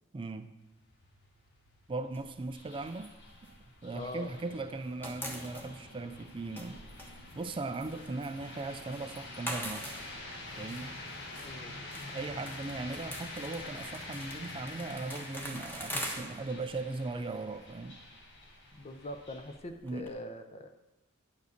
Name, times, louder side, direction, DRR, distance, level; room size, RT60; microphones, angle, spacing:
voice 1, 0.1-0.5 1.9-3.1 3.4-3.5 3.8-9.9 10.6-11.0 12.1-18.0 19.8-20.1, right 3 dB, 25° right, 9 dB, 0.4 m, -39 dB
sound 1, 0.6-19.6, left 2 dB, 60° left, 1.6 m, -47 dB
sound 2, 2.1-4.4 4.6-20.1, equal, 10° left, 1.1 m, -45 dB
voice 2, 3.9-4.3 11.4-11.7 18.7-20.7, left 1 dB, 30° left, 7 dB, 0.7 m, -43 dB
9.4 x 5.0 x 6.5 m, 1.0 s
head